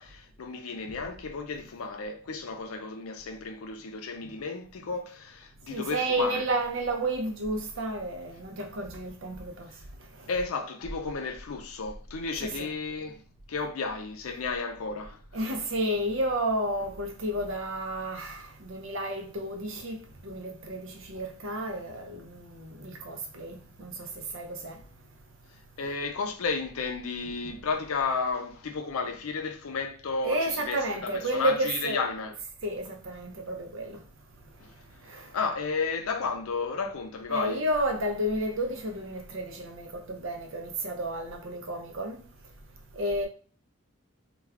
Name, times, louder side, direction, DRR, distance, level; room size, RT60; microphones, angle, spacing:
voice 1, 0.0-6.4 10.3-13.2 13.5-15.5 25.8-32.4 34.6-34.7 35.3-37.6, left 4 dB, 80° left, 0.5 m, -33 dB
voice 2, 5.7-9.7 12.4-12.7 15.3-24.8 30.2-32.0 32.6-34.0 35.0-35.3 37.3-42.2 42.9-43.3, right 1 dB, 65° right, 0.6 m, -31 dB
2.3 x 2.3 x 3.4 m
head